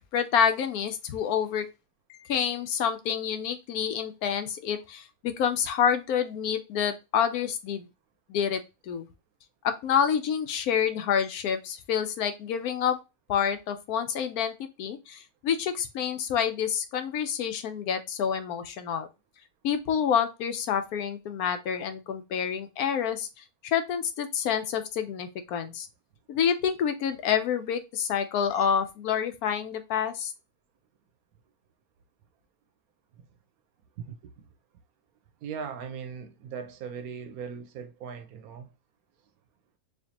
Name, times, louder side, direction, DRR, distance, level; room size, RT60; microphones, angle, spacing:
voice 1, 0.1-1.7 2.1-7.9 8.3-9.1 9.6-13.0 13.3-19.1 19.6-25.9 26.3-30.3, left 8 dB, 75° left, 1.0 m, -28 dB
voice 2, 35.4-38.7, right 6 dB, 75° right, 1.0 m, -39 dB
4.4 x 2.6 x 2.8 m
omnidirectional pair, 1.7 m